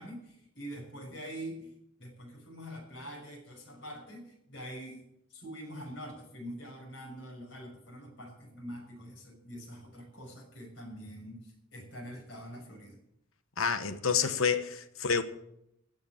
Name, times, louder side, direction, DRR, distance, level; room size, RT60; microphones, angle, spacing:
voice 1, 0.0-1.7 2.0-13.0, equal, 60° left, 6.3 m, -45 dB
voice 2, 13.6-15.2, left 6 dB, 80° left, 1.1 m, -28 dB
15.5 x 6.7 x 8.9 m
head